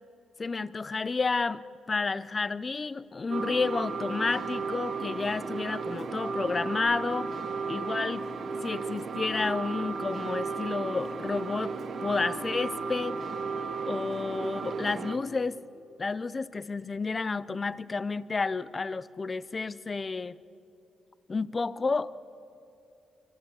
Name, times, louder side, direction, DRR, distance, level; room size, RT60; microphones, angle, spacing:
voice 1, 0.4-1.6 1.9-7.3 7.7-8.3 8.6-11.7 12.0-13.2 13.9-15.6 16.0-20.4 21.3-22.2, left 4 dB, 25° left, 18 dB, 0.6 m, -31 dB
sound 1, 3.3-15.2, right 4 dB, 45° right, 1.9 m, -34 dB
27.0 x 24.0 x 8.1 m, 2.8 s
cardioid pair, 150°, 0 cm